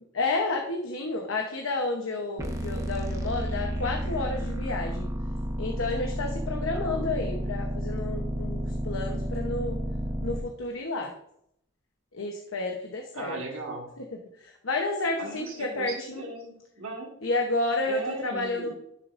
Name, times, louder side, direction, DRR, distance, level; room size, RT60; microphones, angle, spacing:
voice 1, 0.1-5.1 5.6-9.8 10.2-11.1 12.1-13.4 14.0-14.1 14.4-16.2 17.2-18.7, left 2 dB, 80° left, 2 dB, 0.9 m, -31 dB
sound 1, 2.4-10.4, equal, 15° right, 0.8 m, -31 dB
voice 2, 6.7-7.1 13.1-13.9 15.2-17.1 17.9-18.7, right 2 dB, 85° right, 0 dB, 1.6 m, -38 dB
11.0 x 6.6 x 2.5 m, 0.73 s
head